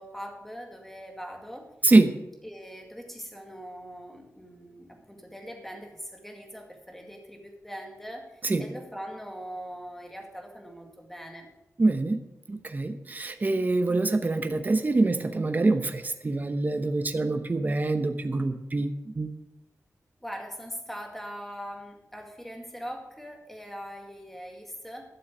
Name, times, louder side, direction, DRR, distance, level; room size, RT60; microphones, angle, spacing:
voice 1, 0.0-1.7 2.4-11.5 20.2-25.1, equal, 5° left, 2 dB, 2.1 m, -41 dB
voice 2, 1.8-2.1 8.4-8.6 11.8-12.2 12.5-19.3, right 2 dB, 30° right, 8 dB, 0.9 m, -25 dB
12.5 x 7.1 x 6.2 m, 0.92 s
wide cardioid pair, 125°, 6 cm